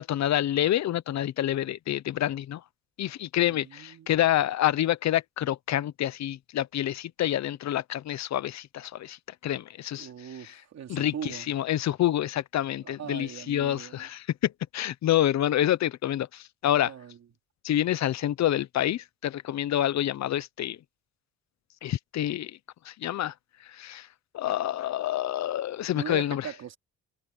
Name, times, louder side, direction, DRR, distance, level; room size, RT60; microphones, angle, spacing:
voice 1, 0.0-2.6 3.0-9.2 9.4-10.1 10.9-16.9 17.6-20.8 21.8-22.6 22.8-23.3 23.7-24.1 24.3-26.5, left 12 dB, 65° left, 0.8 m, -27 dB
voice 2, 3.4-4.1 9.9-11.5 12.8-14.1 16.8-17.2 25.9-26.8, right 9 dB, 60° right, 3.3 m, -40 dB
cardioid pair, 90°, 30 cm